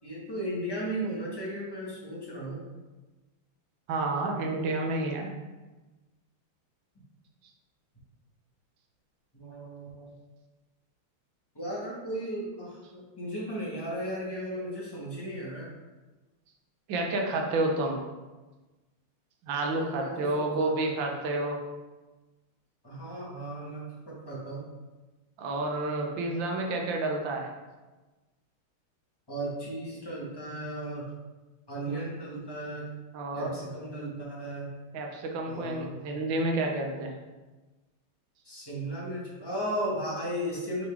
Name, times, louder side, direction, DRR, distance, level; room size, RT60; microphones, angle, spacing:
voice 1, 0.0-2.6 9.3-10.1 11.5-15.7 19.8-20.9 22.8-24.7 29.3-31.1 31.7-32.9 33.3-34.7 35.5-36.0 38.4-40.9, right 1 dB, 10° left, -6 dB, 1.6 m, -35 dB
voice 2, 3.9-5.3 16.9-18.0 19.5-21.6 25.4-27.5 31.9-32.0 33.1-33.5 34.9-37.1, right 2 dB, 65° right, 1 dB, 1.6 m, -30 dB
7.0 x 4.3 x 3.6 m, 1.2 s
omnidirectional pair, 2.3 m